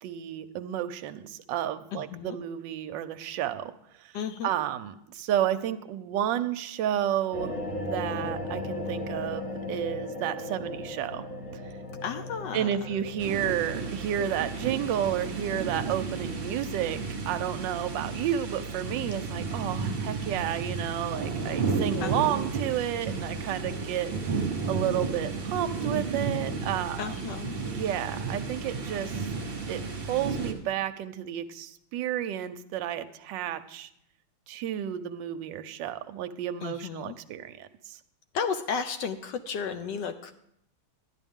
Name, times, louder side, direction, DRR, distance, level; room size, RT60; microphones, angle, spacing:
voice 1, 0.0-3.7 4.0-4.1 4.4-11.2 12.5-17.0 17.3-24.1 24.7-27.2 27.7-29.3 29.7-29.8 30.1-33.9 34.5-38.0, right 11 dB, 70° right, 10 dB, 1.2 m, -31 dB
voice 2, 1.9-2.4 4.1-4.5 12.0-12.9 22.0-22.2 27.0-27.6 36.6-37.2 38.3-40.3, left 6 dB, 75° left, 8 dB, 1.1 m, -33 dB
sound 1, 7.3-16.2, left 1 dB, 45° left, 1.5 m, -37 dB
sound 2, 13.2-30.5, right 4 dB, 35° right, 1.2 m, -33 dB
12.5 x 10.0 x 3.6 m, 0.74 s
omnidirectional pair, 2.2 m